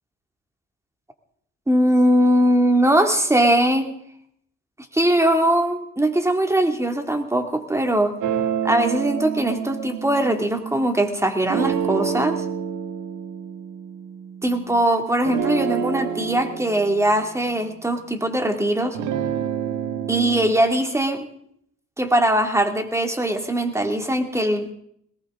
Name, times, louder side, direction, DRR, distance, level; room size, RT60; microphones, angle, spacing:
voice 1, 1.7-3.9 4.9-8.2 8.6-12.4 14.4-19.0 20.1-21.3 22.0-24.7, right 1 dB, 10° right, 6 dB, 2.2 m, -21 dB
sound 1, 8.2-10.9 11.4-14.8 15.2-18.4 18.9-20.5, right 8 dB, 85° right, 1.8 m, -28 dB
21.0 x 18.5 x 3.7 m, 0.69 s
cardioid pair, 90°, 30 cm